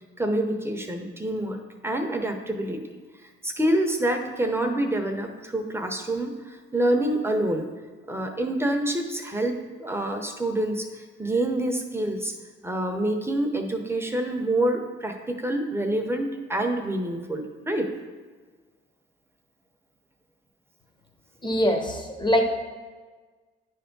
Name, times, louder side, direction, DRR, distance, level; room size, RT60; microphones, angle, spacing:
voice 1, 0.2-2.8 3.2-7.7 8.1-12.3 12.6-17.9, right 1 dB, 10° right, 3 dB, 0.8 m, -27 dB
voice 2, 21.4-22.5, equal, 20° left, 4 dB, 1.0 m, -23 dB
9.6 x 3.5 x 5.3 m, 1.4 s
cardioid pair, 100°, 21 cm